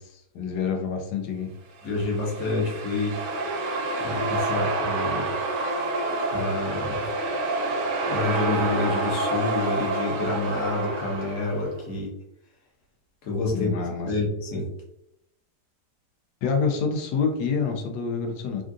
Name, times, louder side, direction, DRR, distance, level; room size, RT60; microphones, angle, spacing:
voice 1, 0.0-1.5 13.5-14.2 16.4-18.6, left 5 dB, 90° left, 3 dB, 1.2 m, -27 dB
voice 2, 1.8-3.1 4.0-5.4 6.3-7.1 8.1-12.1 13.2-13.7 14.1-14.7, left 3 dB, 55° left, -2 dB, 1.2 m, -28 dB
sound 1, 1.8-11.7, right 2 dB, 85° right, 1.3 m, -28 dB
3.6 x 2.5 x 2.4 m, 0.79 s
omnidirectional pair, 1.8 m